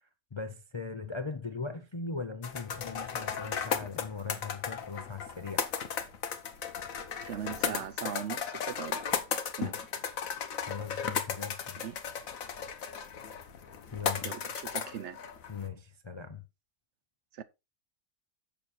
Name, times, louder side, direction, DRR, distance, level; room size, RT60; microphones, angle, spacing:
voice 1, 0.3-5.7 10.5-11.9 13.9-14.4 15.5-16.4, left 4 dB, 35° left, 0.4 m, -39 dB
sound 1, 2.4-15.7, left 7 dB, 75° left, 1.5 m, -35 dB
voice 2, 7.3-9.0 9.6-9.8 11.8-12.0 14.2-15.2 17.3-17.4, right 9 dB, 60° right, 0.9 m, -39 dB
7.0 x 7.0 x 4.4 m
omnidirectional pair, 1.4 m